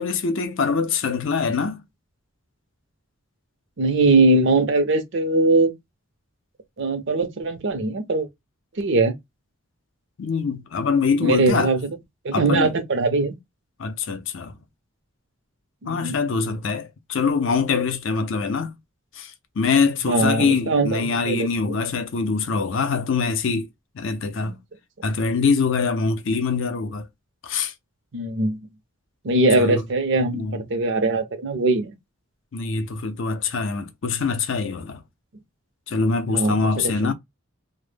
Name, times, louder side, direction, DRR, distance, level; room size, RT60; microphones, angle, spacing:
voice 1, 0.0-1.8 10.2-11.8 12.3-12.7 13.8-14.6 15.9-18.7 19.1-23.7 23.9-24.6 25.0-27.1 27.4-27.7 29.6-29.8 30.3-30.6 32.5-35.0 35.9-37.1, left 5 dB, 60° left, 0.5 m, -24 dB
voice 2, 3.8-5.7 6.8-8.3 8.8-9.1 11.2-11.8 12.2-13.3 15.8-16.2 20.1-21.8 24.4-24.6 28.1-28.6 29.2-31.9 36.3-37.1, right 2 dB, 55° right, 0.5 m, -21 dB
2.1 x 2.0 x 3.2 m
head